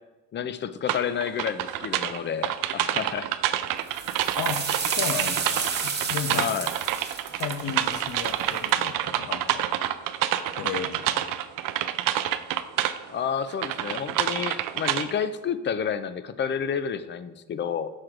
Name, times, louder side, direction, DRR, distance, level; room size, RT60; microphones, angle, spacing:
voice 1, 0.3-3.3 6.3-6.7 13.1-17.9, left 7 dB, 30° left, 12 dB, 0.4 m, -30 dB
sound 1, 0.9-13.0 13.5-15.2, right 12 dB, 65° right, 0.5 m, -27 dB
sound 2, 3.9-8.7, right 5 dB, 30° right, 0.8 m, -32 dB
voice 2, 4.3-6.5 7.3-9.7 10.6-11.2, left 7 dB, 55° left, 8 dB, 0.8 m, -34 dB
6.4 x 3.7 x 4.5 m, 1.1 s
supercardioid pair, 80°, 35 cm